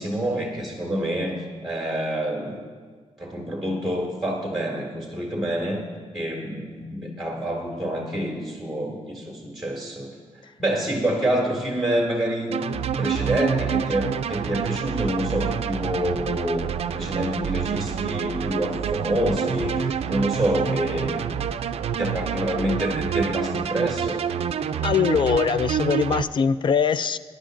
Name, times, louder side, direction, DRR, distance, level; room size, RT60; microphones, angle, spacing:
voice 1, 0.0-2.6 3.2-5.9 6.1-10.1 10.6-21.4 22.0-24.2, right 1 dB, ahead, -1 dB, 1.9 m, -27 dB
sound 1, 12.5-26.2, right 8 dB, 65° right, 0.4 m, -27 dB
voice 2, 24.8-27.2, left 6 dB, 45° left, 14 dB, 0.4 m, -22 dB
21.5 x 10.5 x 2.6 m, 1.5 s
wide cardioid pair, 160°, 11 cm